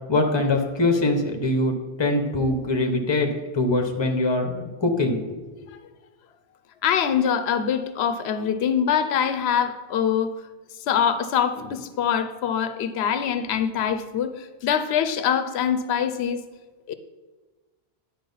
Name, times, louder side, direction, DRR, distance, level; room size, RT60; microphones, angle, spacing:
voice 1, 0.1-3.3 3.5-5.2, left 2 dB, 25° left, 4 dB, 0.9 m, -23 dB
voice 2, 6.8-10.3 10.9-16.4 16.9-17.0, left 8 dB, 90° left, 10 dB, 0.8 m, -24 dB
9.9 x 4.5 x 5.5 m, 1.3 s
omnidirectional pair, 1.0 m